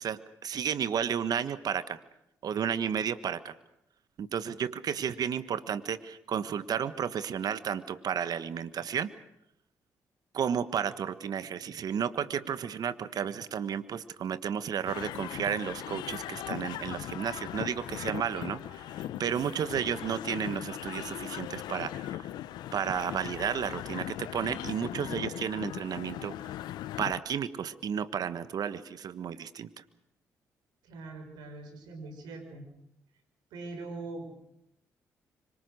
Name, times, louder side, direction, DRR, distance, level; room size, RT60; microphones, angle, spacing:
voice 1, 0.0-2.0 2.4-3.5 4.2-9.1 10.3-18.8 19.2-22.3 22.7-26.5 27.0-29.7, right 8 dB, 65° right, 14 dB, 1.4 m, -32 dB
sound 1, 14.9-27.2, left 13 dB, 80° left, 0.9 m, -39 dB
voice 2, 30.8-32.7 33.5-34.3, right 3 dB, 80° right, 6 dB, 5.5 m, -42 dB
25.5 x 24.0 x 6.6 m, 0.78 s
hypercardioid pair, 50°, 7 cm